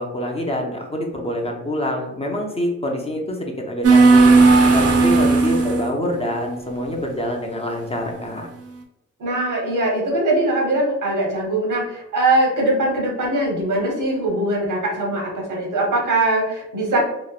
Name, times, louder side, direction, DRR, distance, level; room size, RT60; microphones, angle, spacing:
voice 1, 0.0-4.3 4.7-8.5, left 1 dB, 20° left, 0 dB, 0.4 m, -26 dB
sound 1, 3.8-5.9, right 3 dB, 55° right, 0.4 m, -13 dB
voice 2, 9.2-17.0, right 2 dB, 80° right, -1 dB, 0.9 m, -21 dB
2.9 x 2.0 x 2.3 m, 0.87 s
wide cardioid pair, 100°, 31 cm